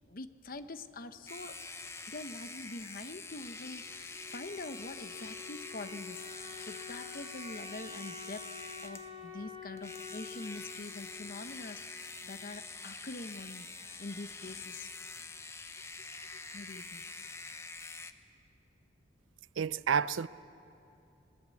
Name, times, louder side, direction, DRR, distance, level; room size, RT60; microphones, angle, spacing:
voice 1, 0.0-1.6 2.1-8.5 8.8-14.9 16.3-17.0, left 2 dB, 45° left, 0.9 m, -45 dB
sound 1, 1.3-9.1 9.8-18.1, left 3 dB, 15° left, 0.7 m, -46 dB
Wind instrument woodwind instrument, 3.7-12.4, left 5 dB, 25° right, 4.9 m, -49 dB
voice 2, 19.6-20.3, right 7 dB, 85° right, 0.5 m, -29 dB
21.5 x 21.5 x 8.4 m
head